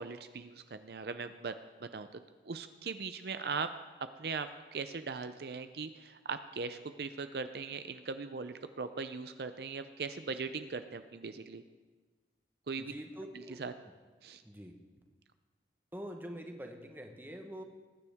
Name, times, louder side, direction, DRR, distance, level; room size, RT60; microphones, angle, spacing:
voice 1, 0.0-1.6 1.8-2.1 2.4-3.7 4.2-11.6 12.7-12.9 13.3-13.7 14.2-14.4, right 4 dB, 65° right, 10 dB, 0.5 m, -39 dB
voice 2, 12.8-13.6 14.4-14.7 15.9-17.6, equal, 10° right, 3 dB, 1.1 m, -45 dB
21.0 x 9.8 x 3.5 m, 1.3 s
head